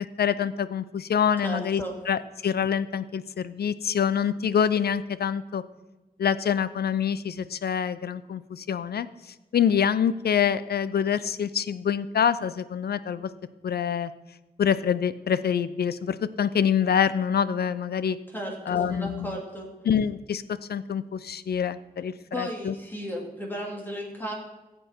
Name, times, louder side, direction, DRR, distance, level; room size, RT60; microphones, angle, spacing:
voice 1, 0.0-5.6 6.2-9.1 9.5-13.3 13.6-14.1 14.6-18.2 18.7-19.4 19.9-20.4 20.7-22.7, left 8 dB, 85° left, 15 dB, 0.5 m, -26 dB
voice 2, 1.4-2.0 18.3-19.7 22.3-24.4, equal, 10° left, -1 dB, 2.5 m, -34 dB
14.5 x 7.8 x 4.4 m, 1.1 s
wide cardioid pair, 95°, 16 cm